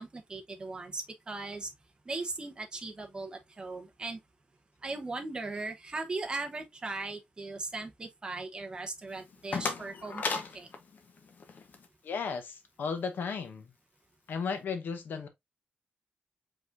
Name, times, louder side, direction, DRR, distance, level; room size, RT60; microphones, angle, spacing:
voice 1, 0.0-1.7 2.0-4.2 4.8-10.2 10.5-10.7, right 3 dB, 25° right, 1.0 m, -38 dB
sound 1, 9.1-11.9, left 4 dB, 55° left, 0.9 m, -36 dB
voice 2, 12.0-13.7 14.3-15.3, left 5 dB, 80° left, 1.0 m, -35 dB
4.9 x 3.9 x 2.6 m
wide cardioid pair, 145°, 3 cm